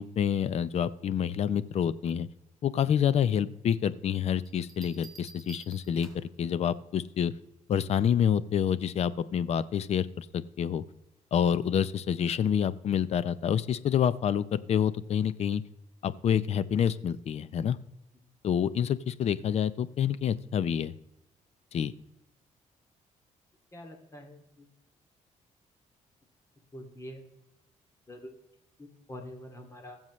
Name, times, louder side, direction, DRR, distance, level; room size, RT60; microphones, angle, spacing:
voice 1, 0.0-2.3 2.6-7.3 7.7-10.8 11.3-15.6 16.0-17.8 18.4-20.9 21.7-21.9, left 8 dB, 55° left, 16 dB, 0.6 m, -28 dB
sound 1, 4.5-6.4 8.0-8.4, right 4 dB, ahead, 2.5 m, -52 dB
voice 2, 23.7-24.7 26.7-27.2 28.1-28.3 28.8-30.0, left 1 dB, 20° left, 3 dB, 2.4 m, -45 dB
20.0 x 7.3 x 3.1 m, 0.90 s
cardioid pair, 115°, 13 cm